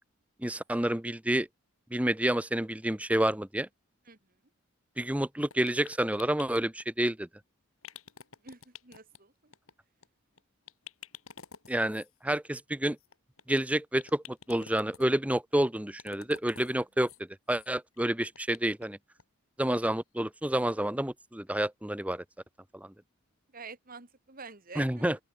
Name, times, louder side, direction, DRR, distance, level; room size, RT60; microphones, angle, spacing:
voice 1, 0.4-1.5 1.9-3.7 5.0-7.3 11.7-13.0 13.5-17.1 17.5-19.0 19.6-22.2 22.7-22.9 24.8-25.2, right 1 dB, 5° right, 0.8 m, -29 dB
sound 1, 5.5-6.8 7.8-9.2 9.5-9.7 10.0-10.1 10.4-10.5 10.7-12.1 13.0-13.6 14.0-15.1 15.7-16.7 17.0-17.2 17.5-17.7 17.9-18.9 19.2-19.3 19.7-19.8, left 7 dB, 80° left, 4.5 m, -49 dB
voice 2, 8.4-9.5 23.5-25.1, right 4 dB, 40° right, 2.3 m, -47 dB
open air
head